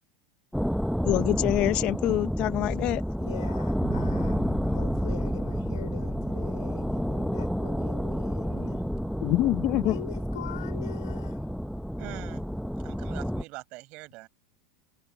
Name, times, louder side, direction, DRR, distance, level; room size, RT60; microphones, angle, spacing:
sound 1, 0.5-13.4, equal, ahead, 0.9 m, -30 dB
voice 1, 1.0-3.0 9.2-10.0, left 16 dB, 50° left, 0.9 m, -25 dB
voice 2, 3.2-8.9 9.8-11.5, left 13 dB, 85° left, 3.9 m, -43 dB
voice 3, 12.0-12.4 12.8-14.3, right 22 dB, 55° right, 6.5 m, -43 dB
Bass guitar, 13.4-13.5, right 16 dB, 75° right, 3.6 m, -48 dB
hypercardioid pair, 110°, 2 cm